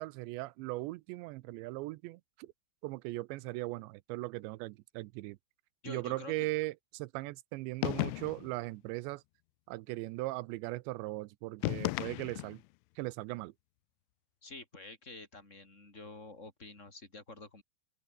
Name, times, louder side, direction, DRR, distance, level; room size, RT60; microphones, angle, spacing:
voice 1, 0.0-2.5 2.8-5.4 5.9-9.2 9.7-12.6 13.0-13.5, right 20 dB, 80° right, 2.8 m, -39 dB
voice 2, 5.8-6.5 14.4-17.6, left 3 dB, 15° left, 4.3 m, -48 dB
sound 1, 7.8-8.6 11.6-12.7, left 24 dB, 90° left, 3.0 m, -34 dB
open air
omnidirectional pair, 5.4 m